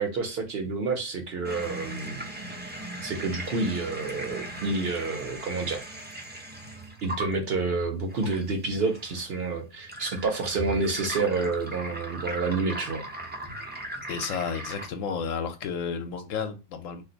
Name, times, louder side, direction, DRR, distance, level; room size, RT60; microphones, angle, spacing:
voice 1, 0.0-2.2 3.0-5.8 7.0-13.0, right 3 dB, 55° right, 0.7 m, -29 dB
sound 1, 1.4-14.9, right 1 dB, 15° right, 0.3 m, -39 dB
voice 2, 14.1-17.0, left 6 dB, 75° left, 1.0 m, -32 dB
2.5 x 2.5 x 3.8 m
omnidirectional pair, 1.4 m